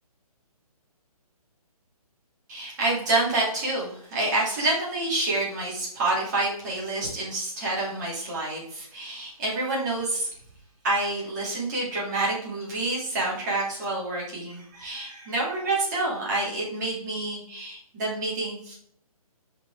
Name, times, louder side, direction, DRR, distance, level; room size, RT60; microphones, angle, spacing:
voice 1, 2.5-10.3 10.8-18.8, right 2 dB, 30° right, -5 dB, 3.1 m, -28 dB
7.2 x 5.3 x 3.8 m, 0.64 s
hypercardioid pair, 170°, 20 cm